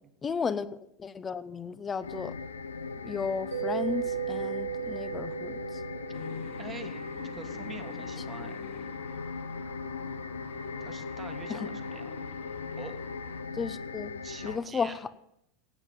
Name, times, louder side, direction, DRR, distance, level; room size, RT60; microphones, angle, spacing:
voice 1, 0.2-0.7 1.0-2.4 3.0-5.8 11.5-11.7 13.5-14.1 14.4-15.0, left 5 dB, 20° left, 15 dB, 0.8 m, -34 dB
sound 1, 2.0-14.6, left 4 dB, 80° left, 0.6 m, -39 dB
Mallet percussion, 3.5-7.0, right 11 dB, 80° right, 4.8 m, -35 dB
sound 2, 6.1-13.4, left 6 dB, 55° left, 2.4 m, -47 dB
voice 2, 6.6-7.1 7.3-8.6 10.8-12.1 12.7-13.0 14.2-15.0, right 5 dB, 25° right, 7 dB, 1.5 m, -45 dB
16.0 x 9.1 x 5.3 m, 0.78 s
figure-of-eight pair, 85°, 0 cm